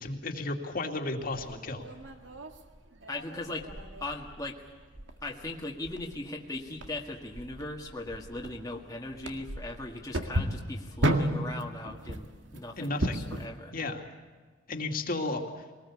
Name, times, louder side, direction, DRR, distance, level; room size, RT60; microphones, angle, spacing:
voice 1, 0.0-1.8 12.8-13.2 13.7-14.0 14.7-15.4, left 2 dB, 50° left, 3 dB, 2.5 m, -33 dB
sound 1, 1.3-13.5, right 1 dB, 90° right, 2.0 m, -35 dB
voice 2, 3.1-3.7 4.0-4.6 5.2-13.7, left 2 dB, 20° left, -1 dB, 1.8 m, -39 dB
23.0 x 19.5 x 8.4 m, 1.4 s
head